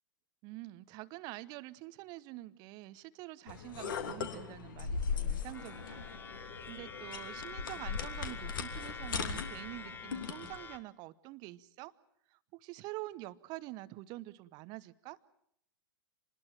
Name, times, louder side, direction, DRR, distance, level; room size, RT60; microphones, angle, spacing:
voice 1, 0.4-6.1 6.3-11.9 12.3-15.2, right 18 dB, 35° right, 17 dB, 1.0 m, -46 dB
sound 1, 3.5-10.6, left 5 dB, 60° left, 3.0 m, -39 dB
sound 2, 5.5-10.8, left 4 dB, 15° left, 1.5 m, -46 dB
27.5 x 20.5 x 7.5 m, 0.70 s
figure-of-eight pair, 100°, 12 cm